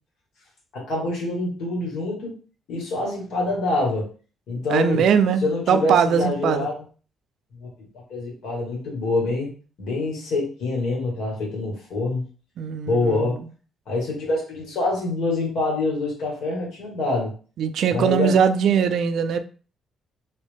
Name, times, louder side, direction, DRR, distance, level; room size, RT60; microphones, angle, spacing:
voice 1, 0.7-2.3 2.7-4.1 4.5-5.0 5.4-6.8 7.6-7.7 8.1-9.5 9.8-12.2 12.8-13.4 13.9-17.3 17.9-18.3, left 2 dB, 75° left, 1.8 m, -25 dB
voice 2, 4.7-6.7 12.6-13.3 17.6-19.4, right 7 dB, 70° right, 0.4 m, -21 dB
3.2 x 2.8 x 3.4 m
cardioid pair, 90°, 0 cm